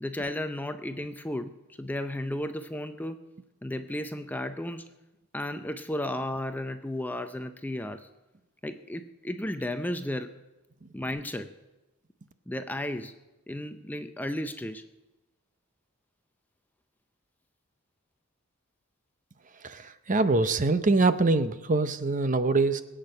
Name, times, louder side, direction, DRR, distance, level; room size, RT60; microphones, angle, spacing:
voice 1, 0.0-3.2 3.6-4.9 5.3-8.1 8.6-10.3 10.9-11.5 12.5-13.1 13.5-14.8, left 1 dB, 10° left, 8 dB, 0.5 m, -34 dB
voice 2, 19.6-22.8, right 3 dB, 35° right, 11 dB, 0.7 m, -24 dB
21.0 x 8.9 x 6.5 m, 1.1 s
head